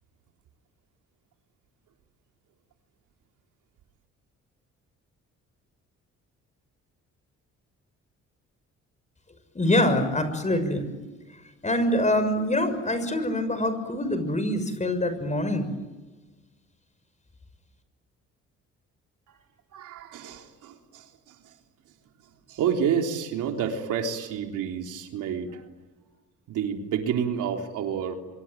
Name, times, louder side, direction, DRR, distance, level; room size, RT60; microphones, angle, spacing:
voice 1, 9.5-10.9 11.6-15.7, left 1 dB, 25° left, 10 dB, 6.3 m, -25 dB
voice 2, 19.7-21.3 22.5-25.6 26.5-28.2, right 7 dB, 85° right, 3 dB, 3.7 m, -29 dB
25.5 x 25.5 x 9.2 m, 1.2 s
cardioid pair, 90°, 30 cm